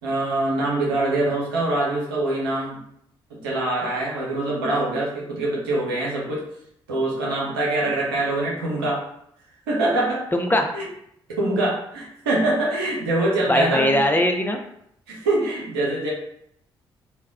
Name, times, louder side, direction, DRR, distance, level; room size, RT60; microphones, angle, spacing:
voice 1, 0.0-2.8 3.3-6.4 6.9-9.1 9.7-10.2 10.7-10.8 11.3-14.2 15.1-16.1, right 2 dB, 90° right, -4 dB, 0.7 m, -24 dB
voice 2, 10.3-10.7 13.5-14.6, left 1 dB, 15° left, 3 dB, 0.5 m, -20 dB
2.2 x 2.1 x 3.5 m, 0.71 s
hypercardioid pair, 45°, 12 cm